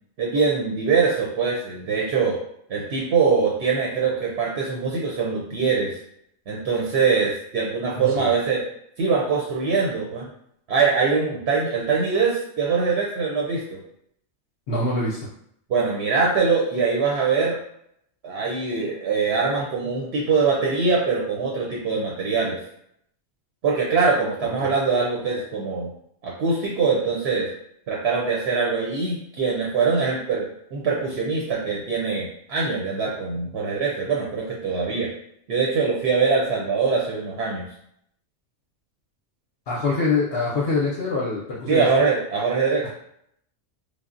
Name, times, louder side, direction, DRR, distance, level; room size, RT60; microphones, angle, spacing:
voice 1, 0.2-2.4 2.7-5.9 6.5-8.6 9.0-10.2 10.7-13.8 15.7-17.6 18.2-22.6 23.6-25.9 26.2-27.5 27.9-35.1 35.5-37.7 41.7-42.9, right 5 dB, 65° right, -3 dB, 0.8 m, -23 dB
voice 2, 7.9-8.3 14.7-15.3 24.4-24.7 39.7-41.9, left 3 dB, 65° left, -5 dB, 0.7 m, -25 dB
3.2 x 2.0 x 2.4 m, 0.72 s
omnidirectional pair, 1.3 m